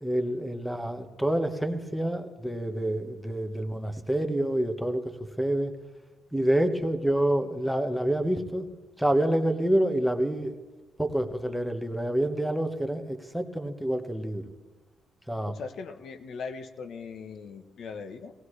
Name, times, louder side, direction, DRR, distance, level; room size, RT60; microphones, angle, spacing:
voice 1, 0.0-5.1 5.4-5.7 6.3-8.7 9.0-10.6 11.0-14.4 15.3-15.5, right 1 dB, ahead, 5 dB, 1.3 m, -27 dB
voice 2, 15.5-18.3, left 5 dB, 65° left, 8 dB, 1.0 m, -39 dB
18.0 x 18.0 x 3.3 m, 1.2 s
cardioid pair, 90°, 0 cm